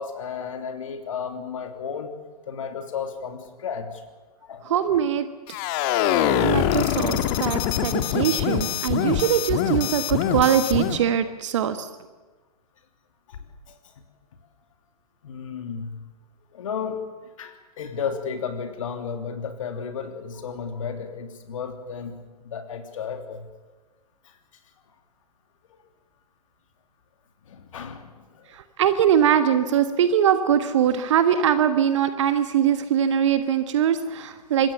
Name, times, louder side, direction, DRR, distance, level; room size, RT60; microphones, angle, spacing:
voice 1, 0.0-2.1 2.5-4.0 4.4-4.7 9.0-9.1 13.3-13.4 13.7-13.8 15.2-16.0 16.5-23.5 24.2-24.3 27.5-28.5, left 6 dB, 55° left, 6 dB, 3.1 m, -33 dB
voice 2, 4.6-5.3 6.4-11.9 28.5-34.7, right 9 dB, 50° right, 10 dB, 1.5 m, -22 dB
sound 1, 5.5-11.0, left 10 dB, 35° left, 1.9 m, -24 dB
25.0 x 22.0 x 7.1 m, 1.3 s
figure-of-eight pair, 115°, 20 cm